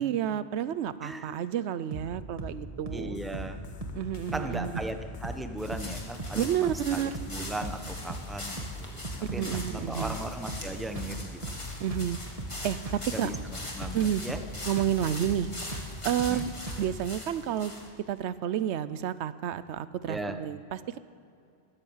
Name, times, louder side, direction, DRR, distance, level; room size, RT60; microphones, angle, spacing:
voice 1, 0.0-3.2 3.9-4.7 6.4-7.1 9.3-10.2 11.8-12.2 12.6-13.3 13.9-14.2 14.7-15.5 16.0-16.5 16.8-17.7 18.1-21.0, right 10 dB, 90° right, 15 dB, 0.9 m, -30 dB
voice 2, 1.0-1.4 2.9-3.6 4.3-9.0 9.3-11.4 13.1-14.4 16.3-16.4 20.1-20.4, right 1 dB, ahead, 6 dB, 0.8 m, -37 dB
sound 1, 1.9-2.1 2.4-2.6 2.9-3.1 3.3-3.6 3.8-4.0 4.3-4.5 4.8-5.0 5.2-5.5 5.7-5.9 6.2-6.4 6.7-6.9 7.1-7.4 7.6-7.8 8.1-8.3 8.6-8.8 9.0-9.7 10.0-10.2 10.5-10.7 11.0-11.2 11.4-11.6 11.9-12.1 12.4-12.6 12.9-13.1 13.3-13.6 13.8-14.0 14.3-14.5 14.8-15.0 15.2-15.5 15.7-15.9 16.2-16.4 16.7-16.9, right 1 dB, 35° right, 1.5 m, -38 dB
sound 2, 3.1-15.1, left 8 dB, 55° left, 0.7 m, -48 dB
sound 3, 5.6-17.9, left 1 dB, 30° left, 2.2 m, -42 dB
14.0 x 12.5 x 7.2 m, 2.5 s
omnidirectional pair, 1.1 m